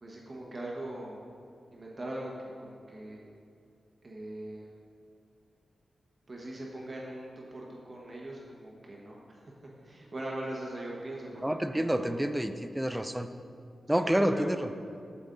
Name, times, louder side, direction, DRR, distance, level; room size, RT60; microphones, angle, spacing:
voice 1, 0.0-1.2 1.7-2.3 2.6-3.3 4.0-4.8 6.3-9.4 9.8-12.2 14.0-14.5, right 1 dB, 30° right, -3 dB, 1.1 m, -40 dB
voice 2, 11.4-13.3 13.9-14.7, equal, 5° right, 9 dB, 0.4 m, -28 dB
8.2 x 7.2 x 3.9 m, 2.6 s
wide cardioid pair, 150°, 0 cm